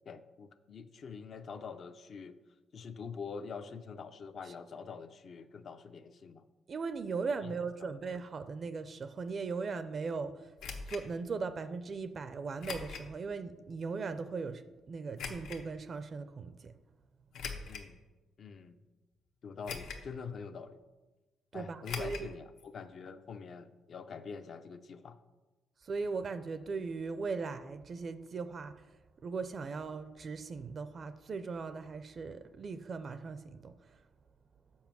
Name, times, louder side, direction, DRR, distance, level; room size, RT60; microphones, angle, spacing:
voice 1, 0.1-2.3 2.7-6.5 7.4-7.5 7.8-7.9 17.7-18.0 18.4-18.8 19.4-20.8 21.5-25.2, left 5 dB, 55° left, 10 dB, 0.5 m, -45 dB
voice 2, 6.7-10.5 10.9-16.7 21.5-22.3 25.8-28.7 29.2-34.0, right 4 dB, 45° right, 12 dB, 0.4 m, -38 dB
sound 1, 10.6-11.0 12.6-13.1 13.7-13.8 15.2-15.6 17.3-17.9 18.5-18.6 19.7-20.1 20.4-20.5 21.8-22.3 22.6-22.7 22.9-23.0, left 5 dB, 80° left, 1.1 m, -41 dB
7.1 x 5.1 x 6.0 m, 1.2 s
cardioid pair, 90°, 0 cm